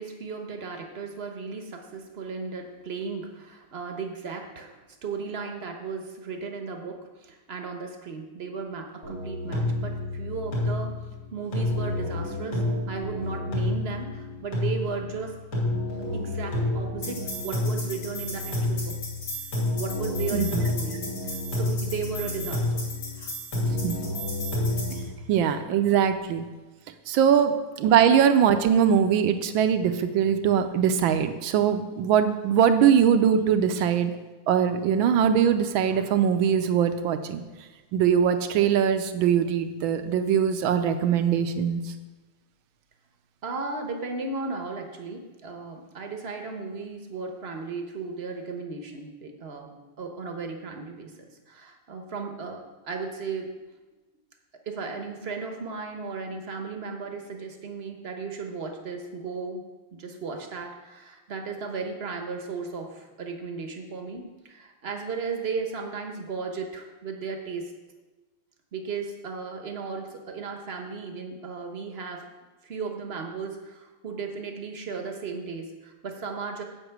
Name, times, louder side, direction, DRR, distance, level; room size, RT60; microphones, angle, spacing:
voice 1, 0.0-11.0 11.3-15.4 16.1-19.0 19.8-22.9 23.1-23.3 25.2-25.3 33.7-33.9 43.4-51.1 51.5-53.5 54.7-59.6 59.9-67.7 68.7-72.2 72.6-76.6, right 4 dB, 45° right, 4 dB, 0.9 m, -35 dB
sound 1, 9.0-25.0, left 1 dB, 65° left, 3.7 m, -29 dB
voice 2, 25.3-26.5 27.1-34.1 34.5-37.4 37.9-41.8, right 8 dB, 75° right, 9 dB, 1.4 m, -22 dB
8.0 x 6.1 x 7.9 m, 1.2 s
omnidirectional pair, 2.3 m